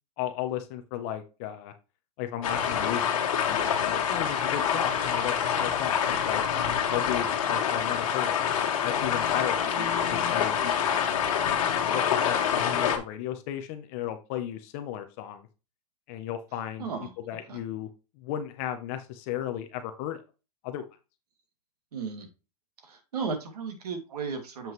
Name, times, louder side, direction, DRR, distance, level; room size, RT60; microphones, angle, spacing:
voice 1, 0.2-1.7 2.2-3.1 3.4-6.4 6.9-8.4 8.8-9.7 10.1-11.0 11.9-15.5 16.1-16.9 17.3-17.9 18.2-20.2 20.6-20.8, left 11 dB, 20° left, 8 dB, 0.4 m, -34 dB
sound 1, 2.4-13.0, left 8 dB, 55° left, 1.5 m, -26 dB
voice 2, 16.8-17.1 17.5-17.6 21.9-22.3 22.8-24.7, right 5 dB, 75° right, 5 dB, 2.1 m, -35 dB
7.5 x 5.5 x 3.0 m, 0.30 s
supercardioid pair, 175°, 20 cm